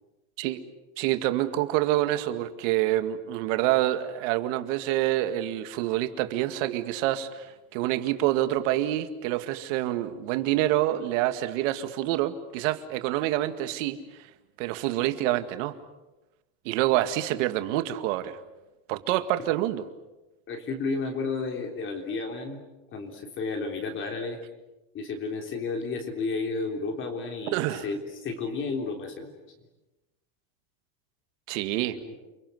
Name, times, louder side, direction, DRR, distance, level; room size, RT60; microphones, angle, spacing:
voice 1, 1.0-14.0 14.6-15.7 16.7-18.4 18.9-19.8 27.5-27.8 31.5-32.0, right 14 dB, 70° right, 10 dB, 2.1 m, -27 dB
voice 2, 20.5-22.6 22.9-24.4 24.9-29.3 32.0-32.1, left 4 dB, 30° left, 4 dB, 3.5 m, -32 dB
30.0 x 22.5 x 8.0 m, 1.0 s
cardioid pair, 165°, 39 cm